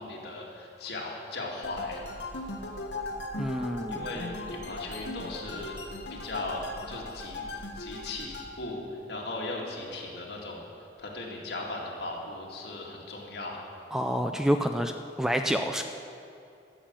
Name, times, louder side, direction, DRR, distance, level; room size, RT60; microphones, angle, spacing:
voice 1, 0.0-2.0 3.9-5.7 6.1-7.4 7.8-8.8 9.1-10.7 11.0-13.6, left 2 dB, 65° left, -2 dB, 2.2 m, -37 dB
sound 1, 1.6-8.5, left 2 dB, 80° left, 1.2 m, -38 dB
voice 2, 3.4-4.1 13.9-14.9 15.2-15.8, equal, 5° right, 6 dB, 0.4 m, -27 dB
13.5 x 7.4 x 7.4 m, 2.6 s
head